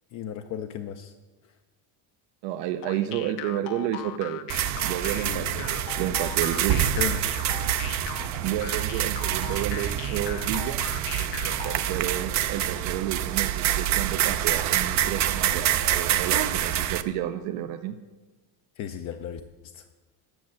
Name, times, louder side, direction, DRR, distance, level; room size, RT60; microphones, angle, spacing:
voice 1, 0.1-1.1 5.2-5.6 6.9-7.3 18.8-19.4 19.7-19.8, left 9 dB, 40° left, 6 dB, 0.4 m, -34 dB
voice 2, 2.4-4.5 4.8-6.9 8.4-10.8 11.4-18.0, right 12 dB, 75° right, 6 dB, 0.7 m, -31 dB
sound 1, 2.8-12.0, left 11 dB, 70° left, 0.8 m, -39 dB
sound 2, 4.5-17.0, right 11 dB, 40° right, 0.5 m, -26 dB
11.0 x 6.2 x 7.4 m, 1.2 s
cardioid pair, 160°, 46 cm